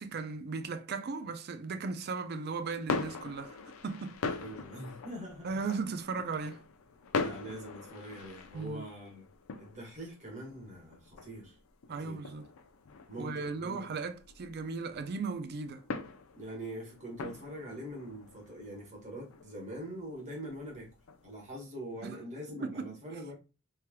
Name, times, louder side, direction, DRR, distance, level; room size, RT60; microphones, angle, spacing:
voice 1, 0.0-3.6 3.8-4.2 5.4-6.6 8.5-8.9 11.9-12.5 13.2-15.8 22.0-22.1 22.5-22.9, right 4 dB, 50° right, 0.4 m, -37 dB
sound 1, 2.5-21.5, left 4 dB, 75° left, 0.5 m, -42 dB
voice 2, 4.2-5.6 7.1-9.3 9.6-11.6 11.9-12.2 13.1-14.0 16.3-20.9 21.2-23.3, right 1 dB, 35° right, 1.3 m, -43 dB
3.2 x 2.9 x 2.2 m
head